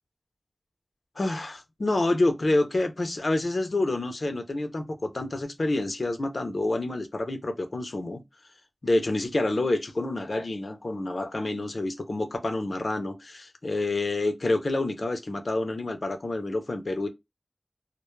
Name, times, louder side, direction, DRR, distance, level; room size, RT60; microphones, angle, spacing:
voice 1, 1.2-8.2 8.8-17.1, left 2 dB, 70° left, 0.5 m, -28 dB
2.2 x 2.1 x 3.0 m
wide cardioid pair, 65°, 0 cm